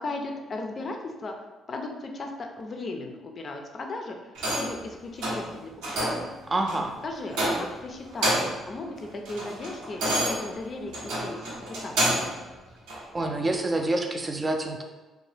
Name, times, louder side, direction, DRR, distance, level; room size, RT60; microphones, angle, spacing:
voice 1, 0.0-1.3 1.7-4.2 4.5-5.7 6.0-6.3 7.0-10.9 11.2-11.9, left 2 dB, 45° left, 3 dB, 0.4 m, -36 dB
sound 1, 4.3-4.8 5.2-5.5 5.8-6.3 6.7-6.9 7.3-7.8 8.1-8.6 9.0-12.4 12.9-13.0, right 1 dB, 85° right, 0.8 m, -28 dB
voice 2, 6.5-6.9 13.1-14.8, right 2 dB, 25° right, 3 dB, 0.4 m, -27 dB
2.6 x 2.2 x 3.3 m, 1.2 s
supercardioid pair, 70°, 0 cm